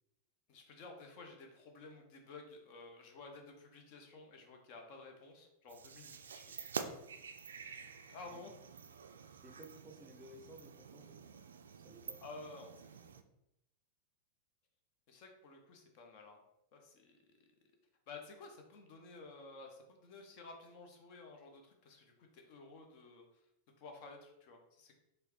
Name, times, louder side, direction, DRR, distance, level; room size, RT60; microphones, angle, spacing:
voice 1, 0.5-7.0 7.6-8.5 12.2-13.1 15.1-16.4 16.7-17.2 18.1-23.2 23.8-24.9, left 3 dB, 45° left, 3 dB, 0.8 m, -53 dB
sound 1, 5.7-13.2, right 6 dB, 70° right, 0.3 m, -48 dB
voice 2, 9.4-11.2 11.8-12.2, right 1 dB, 10° right, 3 dB, 0.6 m, -56 dB
4.7 x 3.1 x 3.0 m, 0.87 s
figure-of-eight pair, 90°, 0 cm